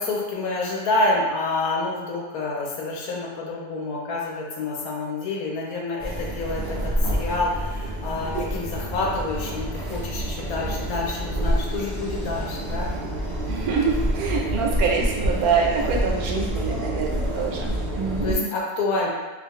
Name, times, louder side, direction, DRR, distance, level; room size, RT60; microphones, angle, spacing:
voice 1, 0.0-6.6 7.1-12.9 18.2-19.1, left 2 dB, 70° left, -2 dB, 1.0 m, -28 dB
sound 1, 6.0-18.3, equal, 50° right, 0.6 m, -28 dB
voice 2, 13.5-18.5, right 5 dB, 75° right, -1 dB, 1.0 m, -25 dB
2.6 x 2.3 x 3.5 m, 1.2 s
omnidirectional pair, 1.7 m